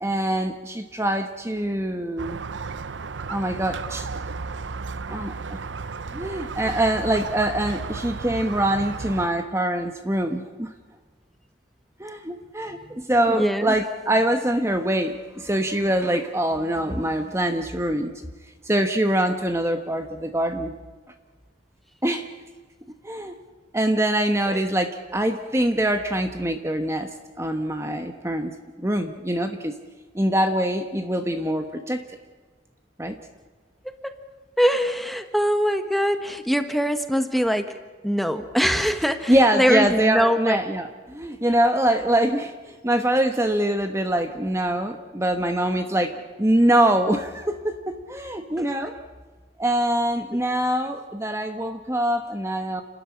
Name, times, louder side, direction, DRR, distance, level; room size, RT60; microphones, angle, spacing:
voice 1, 0.0-2.4 3.3-4.1 5.1-5.6 6.1-10.7 12.0-18.2 18.6-20.7 22.0-22.3 23.0-23.3 23.7-27.1 27.4-29.7 30.1-32.0 33.0-33.2 39.3-48.9 49.6-52.8, right 1 dB, 15° right, 6 dB, 1.1 m, -24 dB
Squeak, 2.2-9.3, right 4 dB, 80° right, 0.7 m, -34 dB
voice 2, 13.3-13.7 24.5-24.6 34.0-34.1 34.6-37.8 38.0-40.6 48.6-48.7, equal, ahead, 8 dB, 1.3 m, -23 dB
29.5 x 13.0 x 9.9 m, 1.4 s
head